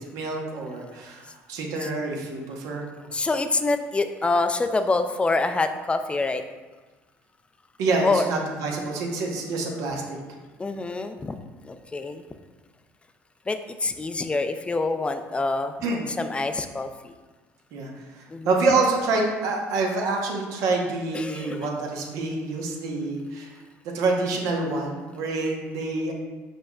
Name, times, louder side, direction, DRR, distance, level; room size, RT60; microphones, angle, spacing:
voice 1, 0.0-2.9 7.8-10.2 15.8-16.0 17.7-23.5 23.9-26.1, right 3 dB, 70° right, 0 dB, 1.0 m, -27 dB
voice 2, 3.1-6.4 8.0-8.2 10.6-11.4 11.6-12.2 13.5-15.7 16.1-17.1 18.3-18.5 21.1-21.7, left 3 dB, 20° left, 8 dB, 0.4 m, -26 dB
5.5 x 4.0 x 2.3 m, 1.3 s
supercardioid pair, 80°, 6 cm